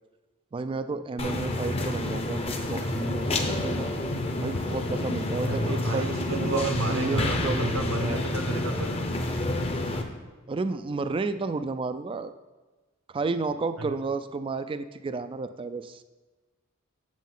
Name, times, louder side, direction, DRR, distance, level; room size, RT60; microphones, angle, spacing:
voice 1, 0.5-3.9 4.4-8.2 10.5-12.3 13.1-16.0, right 3 dB, 25° right, 11 dB, 0.3 m, -32 dB
sound 1, 1.2-10.0, left 1 dB, 30° left, 0.7 m, -29 dB
sound 2, 2.5-2.8 3.6-3.9 4.5-4.9 5.5-5.8 6.7-7.1 7.8-8.1 8.6-8.7 9.0-9.1, left 3 dB, 60° left, 0.5 m, -40 dB
voice 2, 5.4-8.9 13.8-13.9, right 2 dB, 65° right, 5 dB, 0.9 m, -32 dB
8.2 x 7.3 x 3.8 m, 1.2 s
head